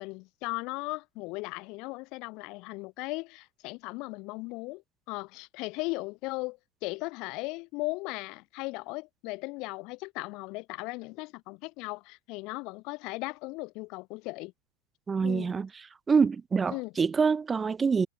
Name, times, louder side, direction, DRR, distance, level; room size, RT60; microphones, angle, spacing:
voice 1, 0.0-4.8 5.1-14.5 15.2-15.5 16.7-16.9, left 25 dB, 45° left, 3.9 m, -37 dB
voice 2, 15.1-15.7 16.1-18.1, right 5 dB, 15° right, 1.9 m, -25 dB
supercardioid pair, 140°, 0 cm